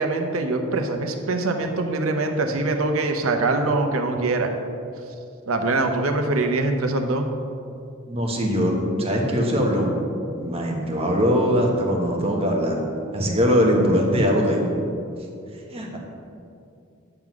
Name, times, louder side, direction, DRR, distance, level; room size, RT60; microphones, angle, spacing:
voice 1, 0.0-4.5 5.5-7.3, right 2 dB, 90° right, 5 dB, 0.8 m, -23 dB
voice 2, 8.1-10.0 10.4-12.8 13.1-14.7 15.7-16.0, equal, 30° right, 0 dB, 1.1 m, -21 dB
9.0 x 3.8 x 6.0 m, 2.5 s
head